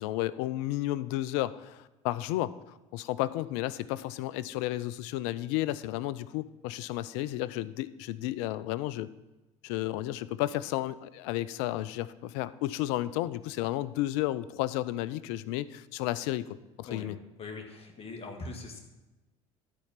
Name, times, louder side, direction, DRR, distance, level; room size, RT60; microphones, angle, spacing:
voice 1, 0.0-9.1 9.6-17.2, left 15 dB, 70° left, 17 dB, 0.5 m, -32 dB
voice 2, 17.4-18.8, left 3 dB, 40° left, 2 dB, 2.0 m, -41 dB
13.0 x 4.4 x 5.8 m, 1.1 s
hypercardioid pair, 65°, 16 cm